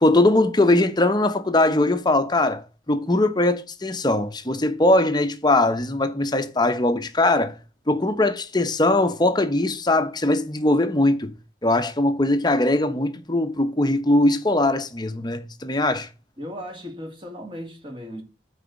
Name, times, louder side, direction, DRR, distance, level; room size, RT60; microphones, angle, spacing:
voice 1, 0.0-7.5 7.9-11.3 11.6-16.1, left 2 dB, 25° left, 1.0 m, -21 dB
voice 2, 16.4-18.2, equal, 30° right, 2.5 m, -36 dB
9.2 x 4.2 x 7.1 m
head